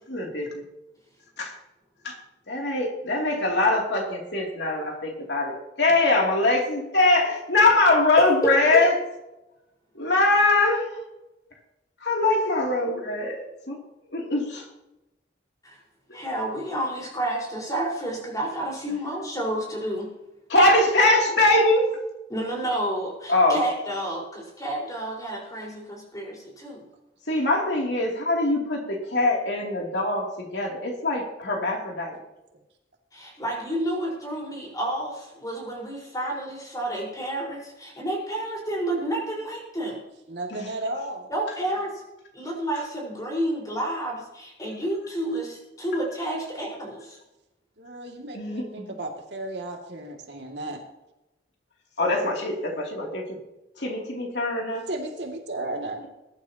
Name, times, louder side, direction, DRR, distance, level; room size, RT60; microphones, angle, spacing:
voice 1, 0.1-0.6 1.4-1.5 2.0-2.1 2.5-8.9 9.9-10.9 12.0-13.4 13.7-13.8 14.1-14.6 20.5-21.9 23.3-23.6 27.3-32.2 40.5-40.7 48.3-48.7 52.0-53.2 53.8-54.8, left 2 dB, 75° left, 0 dB, 3.0 m, -22 dB
voice 2, 8.4-8.9 15.6-15.8 16.1-20.1 22.3-26.8 33.1-40.0 41.3-42.0 42.3-47.2, right 1 dB, 20° left, -2 dB, 4.8 m, -30 dB
voice 3, 40.3-41.3 47.8-50.8 54.9-56.0, right 1 dB, 70° right, 1 dB, 2.4 m, -34 dB
21.0 x 11.5 x 3.0 m, 0.95 s
head